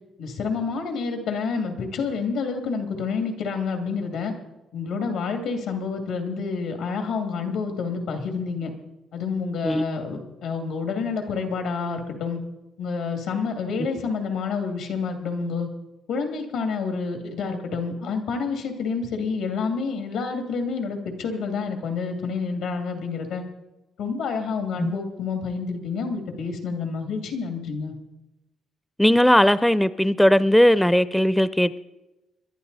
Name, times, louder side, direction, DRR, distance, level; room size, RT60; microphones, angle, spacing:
voice 1, 0.2-4.3 4.7-8.7 9.1-12.4 12.8-15.7 16.1-23.4 24.0-27.9, left 5 dB, 90° left, 5 dB, 2.4 m, -28 dB
voice 2, 29.0-31.8, equal, 5° left, 16 dB, 0.4 m, -18 dB
22.0 x 11.5 x 4.1 m, 1.0 s
cardioid pair, 90°, 0 cm